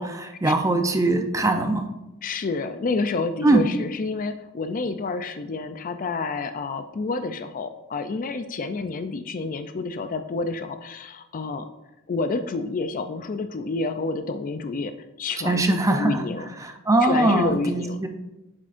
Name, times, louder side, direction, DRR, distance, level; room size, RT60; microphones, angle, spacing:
voice 1, 0.0-1.9 3.4-3.7 15.4-16.2 16.6-18.1, right 2 dB, 15° right, 5 dB, 0.5 m, -21 dB
voice 2, 2.2-11.7 12.1-16.5 17.0-18.0, left 3 dB, 40° left, 9 dB, 0.4 m, -29 dB
9.2 x 7.3 x 2.5 m, 0.97 s
head